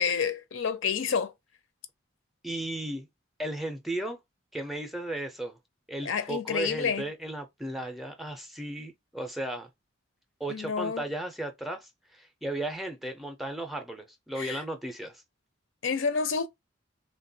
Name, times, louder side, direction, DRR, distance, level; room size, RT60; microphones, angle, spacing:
voice 1, 0.0-1.3 6.0-7.0 10.5-11.0 14.4-14.6 15.8-16.5, left 6 dB, 80° left, 0.5 m, -29 dB
voice 2, 2.4-3.1 3.4-4.2 4.5-5.6 5.9-9.7 10.4-15.2, right 1 dB, ahead, 0.4 m, -35 dB
3.2 x 2.2 x 2.6 m
head